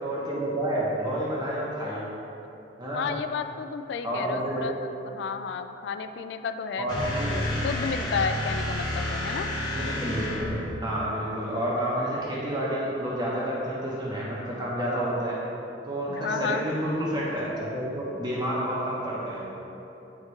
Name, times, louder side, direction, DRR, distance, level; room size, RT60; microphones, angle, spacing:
voice 1, 0.0-2.0 2.8-3.1 4.0-4.6 6.8-7.3 9.7-10.6 10.8-15.4 15.8-19.5, right 1 dB, 25° right, -7 dB, 0.9 m, -29 dB
voice 2, 2.9-9.5 16.1-16.7, left 5 dB, 75° left, 9 dB, 0.3 m, -32 dB
sound 1, 6.9-10.8, left 1 dB, 25° left, 1.1 m, -30 dB
9.5 x 3.2 x 3.2 m, 2.9 s
head